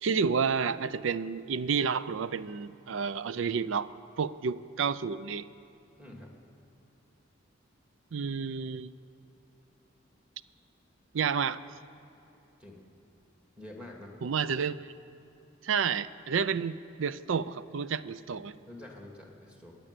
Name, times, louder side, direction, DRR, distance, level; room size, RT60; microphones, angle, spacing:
voice 1, 0.0-3.9 4.2-5.5 8.1-8.9 11.1-11.6 14.2-14.9 15.6-18.6, right 6 dB, 75° right, 16 dB, 0.5 m, -30 dB
voice 2, 6.0-6.3 12.6-12.8 13.6-14.2 18.7-19.8, left 1 dB, 5° right, 0 dB, 2.1 m, -47 dB
21.0 x 8.9 x 6.7 m, 2.9 s
head